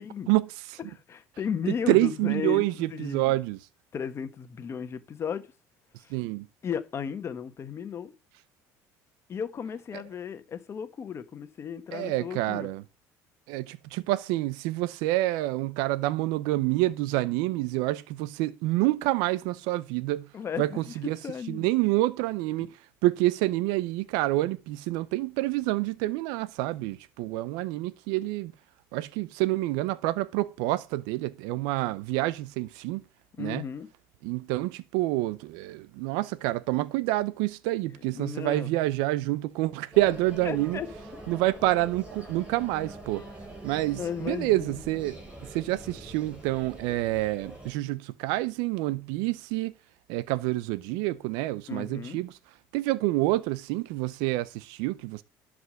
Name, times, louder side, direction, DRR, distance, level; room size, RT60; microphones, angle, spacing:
voice 1, 0.3-0.8 1.9-3.6 6.1-6.5 9.9-10.0 11.9-12.8 13.5-20.3 20.6-21.2 21.5-28.5 28.9-33.0 33.4-33.6 34.2-40.8 41.3-43.2 43.6-49.7 50.1-52.4 52.7-55.2, right 17 dB, 80° right, 0.6 m, -28 dB
voice 2, 0.9-2.6 2.9-3.4 3.9-5.5 6.0-6.1 6.6-8.1 9.3-12.7 20.3-20.9 21.2-21.7 33.4-33.9 38.1-38.7 40.4-40.9 41.1-41.2 43.9-44.8 51.7-52.2, left 7 dB, 40° left, 1.4 m, -35 dB
sound 1, 39.9-47.7, right 1 dB, 15° right, 5.4 m, -44 dB
11.5 x 5.0 x 6.4 m
supercardioid pair, 100°, 7 cm